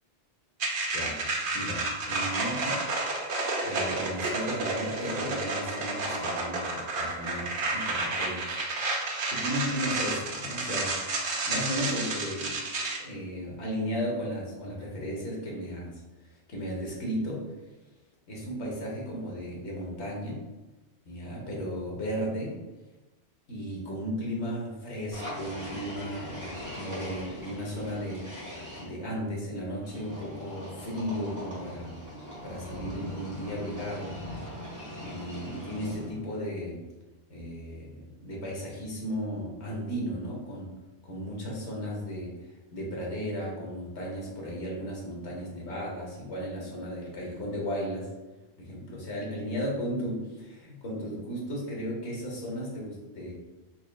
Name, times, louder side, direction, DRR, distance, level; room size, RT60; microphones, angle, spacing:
sound 1, 0.6-13.0, right 2 dB, 55° right, 0.8 m, -31 dB
voice 1, 1.5-2.8 3.6-8.6 9.3-10.9 11.4-12.6 13.0-17.5 18.3-20.4 21.1-22.6 23.5-28.2 28.8-32.0 32.4-34.2 35.0-36.8 37.3-40.7 41.0-42.4 42.7-48.1 48.6-53.3, equal, 80° left, -3 dB, 1.4 m, -35 dB
sound 2, 25.1-28.8 29.8-36.2, equal, 15° right, 1.3 m, -41 dB
4.5 x 3.6 x 2.2 m, 1.1 s
omnidirectional pair, 1.1 m